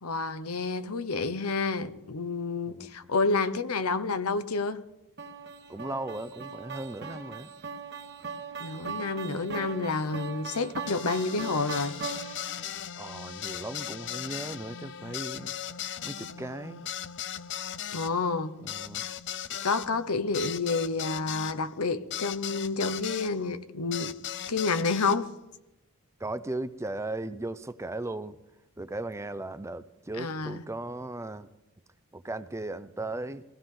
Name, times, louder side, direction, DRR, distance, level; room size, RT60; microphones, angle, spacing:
voice 1, 0.0-4.8 8.6-12.0 17.9-18.6 19.6-24.2 24.5-25.3 30.2-30.6, left 4 dB, 90° left, 1.0 m, -29 dB
sound 1, 5.2-12.6, right 5 dB, 50° right, 1.5 m, -39 dB
voice 2, 5.7-7.5 13.0-15.5 16.0-16.9 18.6-19.1 26.2-28.4 28.8-31.5 32.1-33.4, right 2 dB, 15° right, 0.5 m, -37 dB
sound 2, 10.9-23.3 23.9-25.2, left 10 dB, 55° left, 0.6 m, -38 dB
23.0 x 16.5 x 3.8 m
head